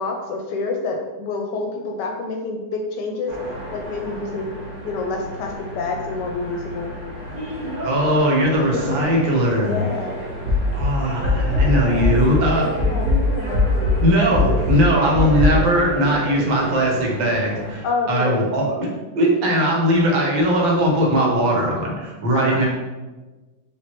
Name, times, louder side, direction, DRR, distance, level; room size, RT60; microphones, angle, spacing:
voice 1, 0.0-3.3 3.7-4.5 4.8-6.9 8.7-9.0 9.6-10.1 11.4-12.1 12.6-13.6 14.5-14.6 17.8-18.4 22.3-22.6, left 3 dB, 75° left, 2 dB, 1.1 m, -28 dB
sound 1, 3.3-17.8, equal, 35° right, 0.9 m, -31 dB
voice 2, 7.8-9.8 10.7-12.7 14.0-18.9 19.1-22.7, equal, 75° right, -1 dB, 1.7 m, -19 dB
sound 2, 10.5-12.5 12.8-15.5, left 3 dB, 55° right, 1.3 m, -20 dB
5.2 x 3.0 x 2.9 m, 1.2 s
omnidirectional pair, 2.1 m